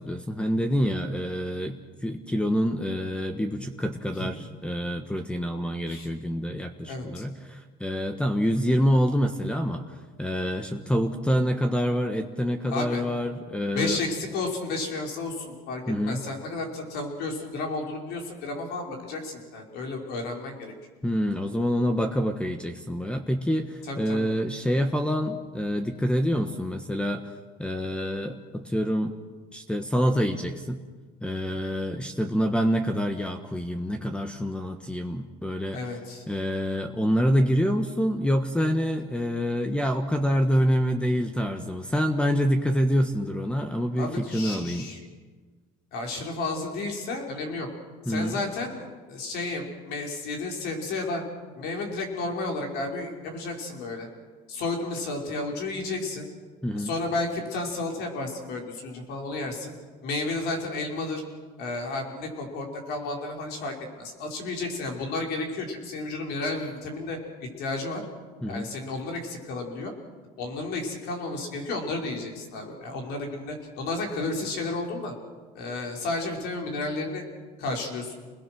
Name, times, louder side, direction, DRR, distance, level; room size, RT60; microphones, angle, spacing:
voice 1, 0.0-14.0 15.9-16.2 21.0-27.3 27.6-29.1 29.5-30.8 31.2-35.8 36.3-44.9 48.1-48.4 56.6-56.9 68.4-68.7, equal, 5° left, 7 dB, 1.3 m, -26 dB
voice 2, 6.9-7.2 12.7-13.0 13.7-20.7 23.8-24.3 35.7-36.2 44.0-45.0 45.9-47.7 48.0-51.2 51.6-54.1 54.5-56.3 56.7-59.7 60.0-61.2 61.6-68.0 68.5-69.9 70.4-75.1 75.5-77.2 77.6-78.1, left 2 dB, 65° left, 1 dB, 5.5 m, -32 dB
28.5 x 20.5 x 6.2 m, 1.4 s
cardioid pair, 125°, 18 cm